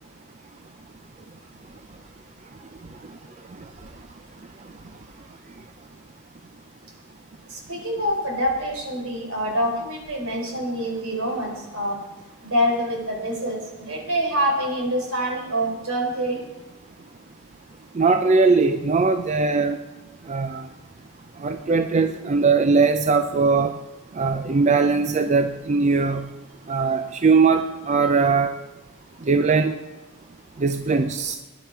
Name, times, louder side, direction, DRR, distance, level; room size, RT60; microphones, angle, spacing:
voice 1, 7.5-12.0 12.4-16.4, equal, 70° right, 1 dB, 4.1 m, -26 dB
voice 2, 17.9-19.8 20.3-20.7 21.4-23.7 24.1-26.3 26.7-28.5 29.3-29.7 30.6-31.4, right 4 dB, 30° right, 8 dB, 0.5 m, -20 dB
18.0 x 10.5 x 4.6 m, 1.1 s
head